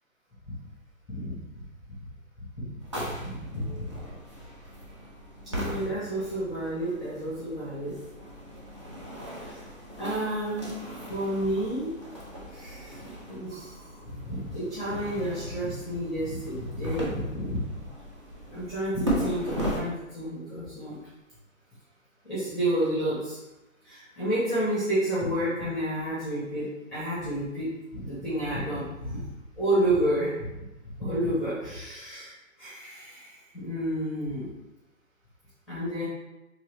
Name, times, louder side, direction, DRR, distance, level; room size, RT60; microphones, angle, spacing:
voice 1, 1.1-1.4 2.6-4.0 5.5-7.9 9.4-9.6 10.0-10.7 11.1-11.9 12.5-13.0 13.3-17.7 18.5-21.0 22.2-23.4 23.8-29.2 29.6-30.5 31.0-32.3 32.6-34.5 35.7-36.0, right 1 dB, ahead, -10 dB, 0.8 m, -30 dB
sound 1, 2.8-19.8, equal, 25° right, 0.4 m, -37 dB
3.0 x 2.8 x 3.1 m, 0.99 s
figure-of-eight pair, 140°, 41 cm